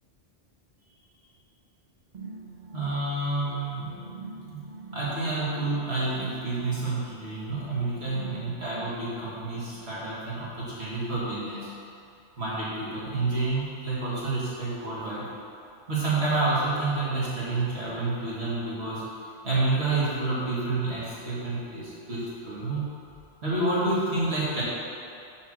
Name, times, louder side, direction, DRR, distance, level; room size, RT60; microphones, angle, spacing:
sound 1, 2.1-10.1, right 3 dB, 45° right, 0.7 m, -45 dB
voice 1, 2.7-4.6 4.9-11.7 12.4-15.2 15.9-19.0 19.4-22.9 23.4-24.6, right 2 dB, 65° right, -9 dB, 2.4 m, -29 dB
7.1 x 4.4 x 6.2 m, 2.5 s
omnidirectional pair, 1.2 m